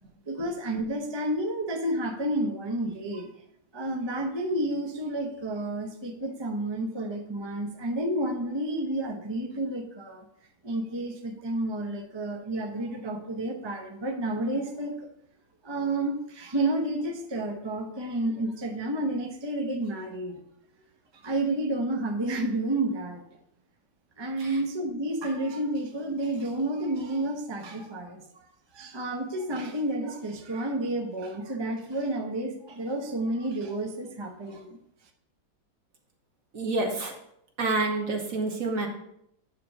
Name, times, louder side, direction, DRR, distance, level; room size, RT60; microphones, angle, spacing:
voice 1, 0.3-3.3 3.7-10.3 10.6-15.1 15.6-20.4 21.1-23.2 24.2-28.5 28.7-34.8, right 1 dB, 30° right, 3 dB, 0.5 m, -30 dB
voice 2, 36.5-37.1 37.6-38.9, right 3 dB, 50° right, 2 dB, 1.6 m, -28 dB
9.4 x 3.7 x 6.5 m, 0.74 s
omnidirectional pair, 2.1 m